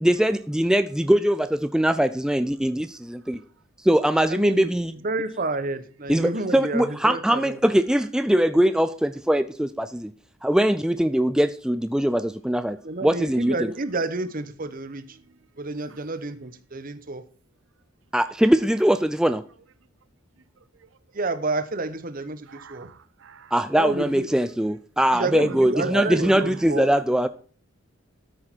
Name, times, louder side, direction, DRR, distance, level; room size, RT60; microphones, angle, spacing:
voice 1, 0.0-3.4 3.8-4.9 6.1-10.1 10.4-13.7 18.1-19.4 23.5-27.3, right 1 dB, 5° right, 0.3 m, -22 dB
voice 2, 4.3-4.7 5.0-7.6 12.8-15.1 15.6-17.2 21.1-22.9 23.7-24.3 25.1-26.9, right 2 dB, 45° right, 0.9 m, -29 dB
voice 3, 22.5-23.5 25.4-26.7, right 4 dB, 65° right, 0.5 m, -38 dB
13.0 x 6.4 x 4.5 m
head